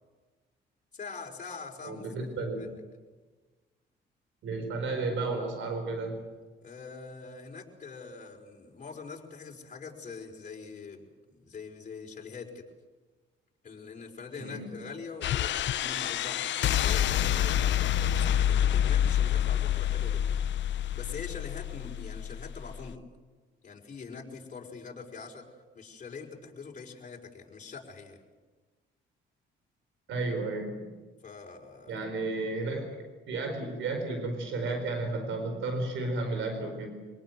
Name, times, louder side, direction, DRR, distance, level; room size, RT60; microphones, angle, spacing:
voice 1, 0.9-2.7 6.6-12.6 13.6-15.5 15.8-20.2 20.7-23.0 23.6-25.4 25.7-28.2 31.2-32.0, left 5 dB, 40° left, 0 dB, 5.4 m, -44 dB
voice 2, 1.8-2.6 4.4-6.2 14.4-14.7 30.1-30.8 31.9-32.8 33.3-36.9, right 3 dB, 75° right, 5 dB, 4.6 m, -32 dB
sound 1, 15.2-22.9, left 10 dB, 65° left, 0.7 m, -28 dB
25.5 x 18.5 x 7.9 m, 1.3 s
cardioid pair, 90°, 20 cm